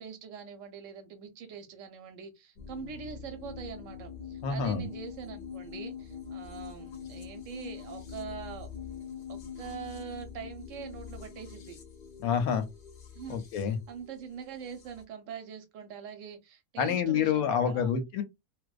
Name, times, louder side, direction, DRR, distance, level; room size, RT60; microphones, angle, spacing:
voice 1, 0.0-8.7 9.3-11.8 13.1-17.9, right 7 dB, 70° right, 0.8 m, -43 dB
sound 1, 2.6-15.0, left 7 dB, 55° left, 0.6 m, -44 dB
voice 2, 4.4-4.9 12.2-12.6 13.3-13.8 16.8-18.2, left 7 dB, 85° left, 1.0 m, -27 dB
2.6 x 2.1 x 2.3 m
omnidirectional pair, 1.5 m